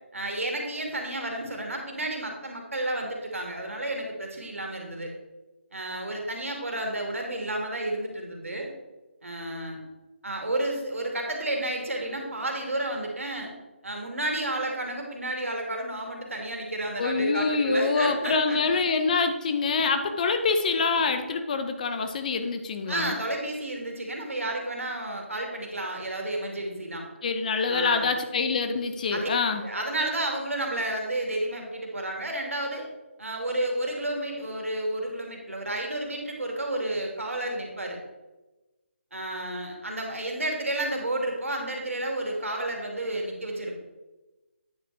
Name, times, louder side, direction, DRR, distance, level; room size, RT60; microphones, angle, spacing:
voice 1, 0.1-5.1 5.7-8.7 9.2-9.8 10.2-13.5 13.8-18.6 22.9-27.0 27.7-28.1 29.1-29.3 29.6-32.9 33.2-38.0 39.1-43.7, right 1 dB, 85° right, 1 dB, 2.3 m, -31 dB
voice 2, 17.0-23.1 27.2-29.6, left 4 dB, 35° left, 7 dB, 0.8 m, -25 dB
9.2 x 5.0 x 4.7 m, 1.1 s
figure-of-eight pair, 155°, 7 cm